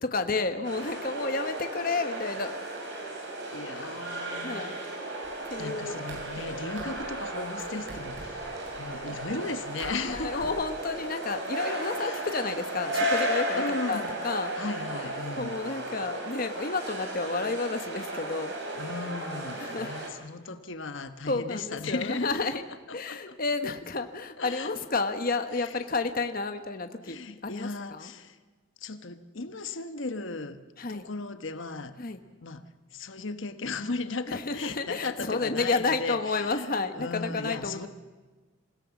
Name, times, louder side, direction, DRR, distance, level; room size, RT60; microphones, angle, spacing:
voice 1, 0.0-2.5 4.4-4.8 5.5-6.0 10.0-14.5 15.3-18.6 19.6-19.9 21.3-22.6 22.9-27.2 27.4-28.1 30.8-31.1 32.0-32.2 34.3-37.9, left 3 dB, 45° left, 7 dB, 1.1 m, -31 dB
sound 1, 0.6-20.1, right 1 dB, 55° right, 4.8 m, -35 dB
voice 2, 3.5-5.1 5.6-10.5 12.0-12.3 13.5-14.1 14.5-15.6 18.8-22.3 22.7-23.4 24.4-24.8 25.5-25.8 27.0-28.4 28.8-30.6 30.9-32.0 32.4-32.6 32.9-37.9, left 3 dB, 65° left, 9 dB, 1.2 m, -36 dB
sound 2, 5.2-5.5 5.8-7.3 7.6-9.4 9.8-10.5, right 1 dB, 70° right, 7.5 m, -45 dB
27.0 x 17.5 x 7.2 m, 1.3 s
head